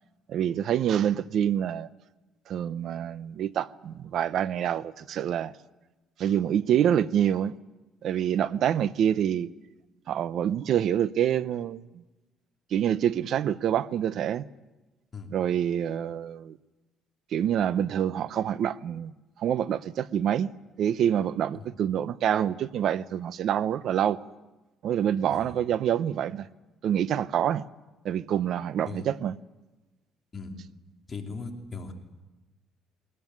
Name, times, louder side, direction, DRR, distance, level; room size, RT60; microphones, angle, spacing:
voice 1, 0.3-1.9 2.5-5.5 6.2-7.5 8.0-9.5 10.1-11.8 12.7-14.5 15.3-16.6 17.3-19.1 19.4-20.5 20.8-24.2 24.8-26.5 26.8-27.6 28.0-29.3, right 9 dB, 55° right, 0.7 m, -26 dB
voice 2, 31.1-31.9, left 4 dB, 25° left, 3.3 m, -38 dB
22.0 x 20.5 x 9.4 m
cardioid pair, 150°, 0 cm